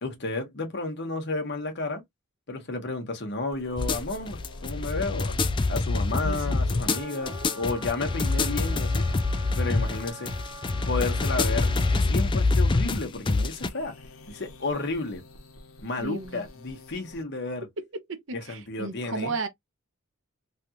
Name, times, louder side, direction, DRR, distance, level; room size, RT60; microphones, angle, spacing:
voice 1, 0.0-2.0 2.5-5.4 5.7-9.0 9.5-10.3 10.9-13.9 14.3-15.2 15.8-17.7 18.3-19.3, left 3 dB, 55° left, 1.0 m, -32 dB
sound 1, 3.5-17.2, left 1 dB, 85° left, 0.9 m, -46 dB
sound 2, 3.8-13.7, left 3 dB, 25° left, 0.3 m, -25 dB
voice 2, 6.2-6.6 16.0-16.5 17.8-19.5, right 3 dB, 60° right, 0.7 m, -34 dB
Wind instrument woodwind instrument, 6.8-12.0, right 1 dB, 25° right, 0.8 m, -44 dB
3.3 x 2.4 x 2.8 m
head